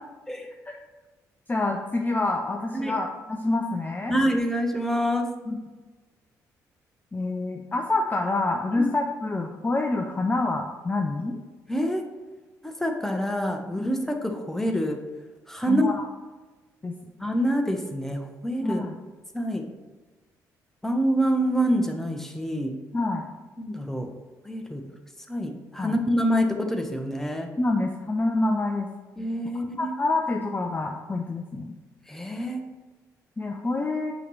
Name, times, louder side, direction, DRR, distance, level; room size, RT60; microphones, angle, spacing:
voice 1, 1.5-4.1 5.5-5.6 7.1-11.4 13.8-13.9 15.7-16.1 16.8-16.9 18.6-19.0 22.9-23.3 25.8-26.0 27.6-28.9 29.8-31.7 33.4-34.1, left 2 dB, 20° left, 3 dB, 0.5 m, -27 dB
voice 2, 4.1-5.3 8.8-8.9 11.7-12.0 12.6-15.0 15.5-15.9 17.2-18.8 19.3-19.6 20.8-22.7 23.6-24.1 24.4-24.8 25.3-27.5 29.2-29.9 32.1-32.6, equal, 5° left, 3 dB, 1.0 m, -26 dB
5.7 x 3.1 x 5.4 m, 1.3 s
hypercardioid pair, 50°, 8 cm